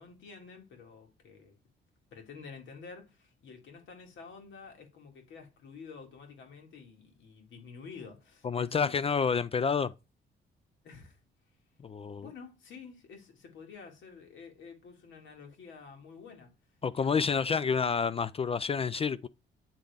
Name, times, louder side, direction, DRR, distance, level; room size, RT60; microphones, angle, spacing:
voice 1, 0.0-1.6 2.1-9.0 10.8-11.2 12.2-16.5 16.9-17.8, left 5 dB, 75° left, 2.3 m, -49 dB
voice 2, 8.4-9.9 11.8-12.3 16.8-19.3, left 6 dB, 30° left, 0.3 m, -29 dB
8.8 x 3.8 x 3.5 m
cardioid pair, 90°, 20 cm